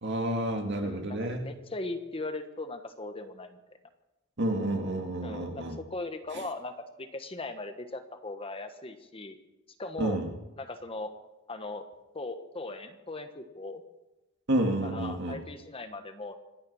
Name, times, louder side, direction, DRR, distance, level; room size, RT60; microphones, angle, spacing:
voice 1, 0.0-1.5 4.4-5.8 10.0-10.3 14.5-15.4, right 1 dB, 55° right, 4 dB, 2.2 m, -30 dB
voice 2, 0.8-3.6 5.2-6.7 7.0-9.4 9.8-10.2 10.6-11.1 11.5-11.8 12.1-13.8 14.8-16.3, left 2 dB, 25° left, 8 dB, 1.2 m, -39 dB
25.5 x 9.9 x 5.6 m, 1.0 s
head